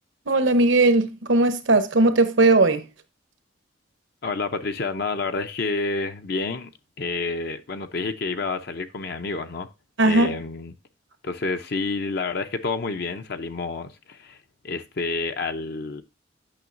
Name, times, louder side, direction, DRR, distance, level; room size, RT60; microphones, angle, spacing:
voice 1, 0.3-2.8 10.0-10.3, right 2 dB, 75° right, 1.0 m, -18 dB
voice 2, 4.2-6.7 7.0-9.7 10.0-10.7 11.2-14.4 14.6-16.0, left 3 dB, 55° left, 0.6 m, -29 dB
8.9 x 6.3 x 2.5 m
head